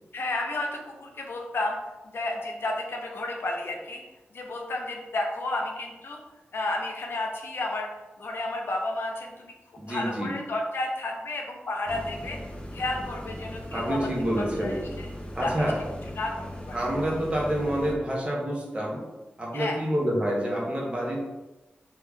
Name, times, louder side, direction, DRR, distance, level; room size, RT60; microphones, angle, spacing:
voice 1, 0.1-1.8 2.1-4.0 4.3-6.2 6.5-7.9 8.2-9.5 9.9-12.4 12.7-14.0 14.4-15.1 15.4-15.7 16.2-16.8 19.5-19.8, left 2 dB, 75° left, 0 dB, 0.5 m, -32 dB
voice 2, 9.8-10.3 13.7-14.8 15.3-15.8 16.7-19.1 19.4-21.2, equal, 30° right, -3 dB, 0.8 m, -28 dB
sound 1, 11.9-17.9, equal, 25° left, 0.5 m, -39 dB
2.7 x 2.3 x 3.4 m, 1.1 s
wide cardioid pair, 70°, 4 cm